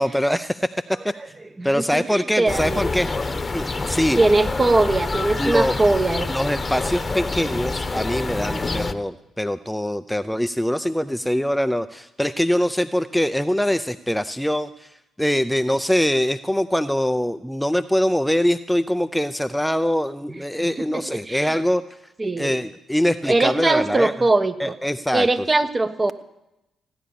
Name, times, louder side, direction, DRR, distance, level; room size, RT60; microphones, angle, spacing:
voice 1, 0.0-1.3 1.6-3.1 3.5-4.2 5.4-5.7 6.3-21.8 22.4-24.1 24.6-25.3, equal, 5° left, 11 dB, 0.6 m, -23 dB
voice 2, 1.6-2.8 4.2-6.3 20.8-21.6 22.2-22.5 23.3-24.8 25.1-26.1, right 2 dB, 30° right, 9 dB, 1.2 m, -21 dB
sound 1, 2.5-8.9, left 3 dB, 30° left, 1.1 m, -27 dB
16.5 x 10.0 x 7.0 m, 0.89 s
hypercardioid pair, 50°, 0 cm